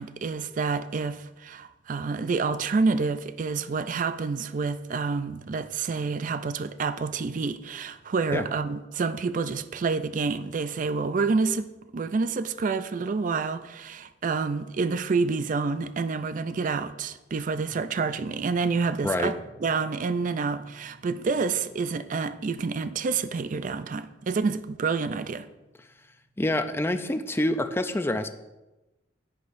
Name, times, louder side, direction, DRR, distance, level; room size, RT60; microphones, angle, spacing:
voice 1, 0.0-25.5, right 4 dB, 45° right, 0.4 m, -28 dB
sound 1, 17.7-27.2, right 2 dB, 40° left, 1.6 m, -56 dB
voice 2, 19.0-19.3 26.4-28.3, left 1 dB, 15° left, 0.5 m, -26 dB
10.5 x 10.0 x 2.6 m
head